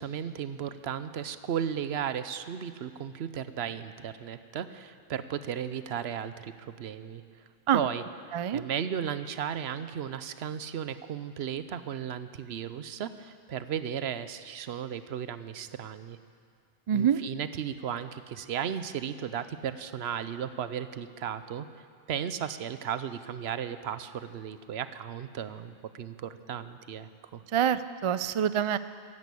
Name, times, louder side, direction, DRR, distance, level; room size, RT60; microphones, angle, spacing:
voice 1, 0.0-7.3 7.7-8.0 8.3-16.2 16.9-27.4, right 8 dB, 80° right, 12 dB, 0.9 m, -35 dB
voice 2, 16.9-17.2 27.5-28.8, right 9 dB, 50° right, 14 dB, 0.3 m, -26 dB
14.5 x 11.0 x 8.4 m, 2.2 s
omnidirectional pair, 1.1 m